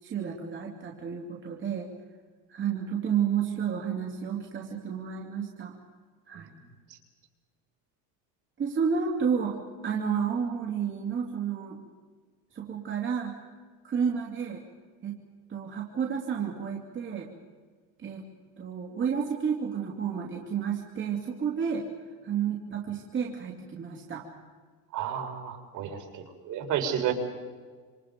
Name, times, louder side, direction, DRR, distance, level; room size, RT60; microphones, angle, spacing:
voice 1, 0.0-1.9 2.5-5.7 6.3-6.5 8.6-11.8 12.5-13.3 13.8-14.6 15.0-15.2 15.5-17.3 18.0-18.2 18.6-21.9 22.2-24.2, right 7 dB, 35° right, -1 dB, 2.8 m, -31 dB
voice 2, 24.9-27.1, right 9 dB, 55° right, 4 dB, 4.6 m, -31 dB
27.5 x 26.5 x 5.3 m, 1.5 s
cardioid pair, 140°, 36 cm